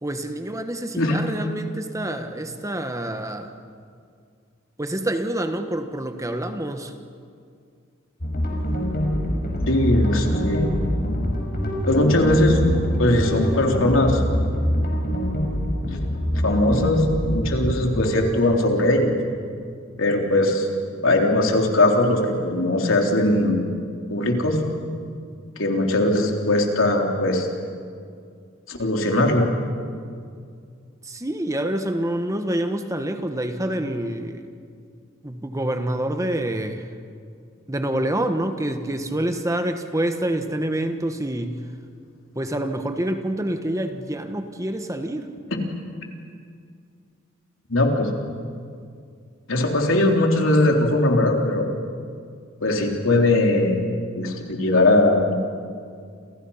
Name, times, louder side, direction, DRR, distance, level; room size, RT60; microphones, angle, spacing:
voice 1, 0.0-3.5 4.8-6.9 31.0-34.5 35.2-36.9 37.7-41.6 42.3-45.3, right 1 dB, 15° right, 7 dB, 1.4 m, -27 dB
sound 1, 8.2-18.1, equal, 50° left, 5.6 m, -24 dB
voice 2, 9.7-10.8 11.9-12.6 13.0-14.2 16.4-19.2 20.0-20.7 21.0-23.6 24.1-24.6 25.6-27.5 28.7-29.5 45.5-45.6 47.7-48.1 49.5-51.7 52.6-53.9 54.2-55.3, left 1 dB, 75° left, 2 dB, 3.7 m, -20 dB
29.0 x 28.5 x 5.7 m, 2.3 s
head